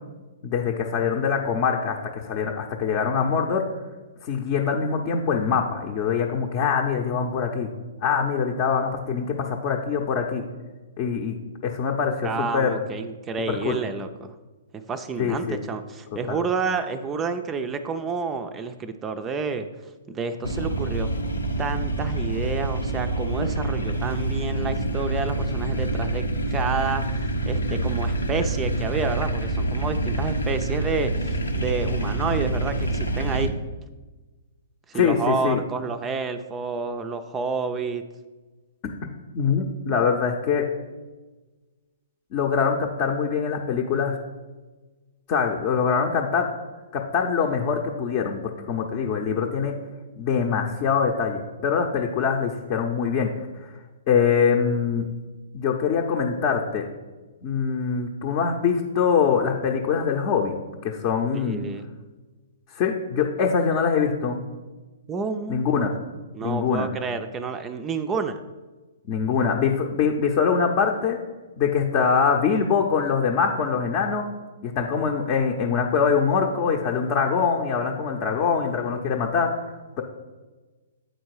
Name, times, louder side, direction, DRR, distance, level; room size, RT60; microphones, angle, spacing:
voice 1, 0.4-3.6 4.2-7.7 8.0-10.4 11.0-11.4 11.6-12.8 13.5-13.8 15.2-15.6 16.3-16.4 34.9-35.6 39.3-40.6 42.3-44.2 45.3-46.5 46.9-48.4 48.7-49.7 50.2-53.3 53.6-53.7 54.1-55.1 55.5-56.9 57.4-60.5 60.8-61.6 62.7-64.4 65.5-65.9 66.4-66.9 69.1-71.2 71.6-74.3 74.6-79.5, left 6 dB, 40° left, 1 dB, 0.7 m, -23 dB
voice 2, 12.2-14.3 14.9-19.7 20.1-21.1 21.6-26.2 26.5-27.1 27.5-33.5 34.9-38.0 61.3-61.8 65.1-65.7 66.3-68.4, right 5 dB, 20° right, 8 dB, 0.4 m, -29 dB
sound 1, 20.4-33.5, right 2 dB, 85° left, 0.8 m, -26 dB
7.9 x 4.4 x 4.7 m, 1.2 s
figure-of-eight pair, 115°, 0 cm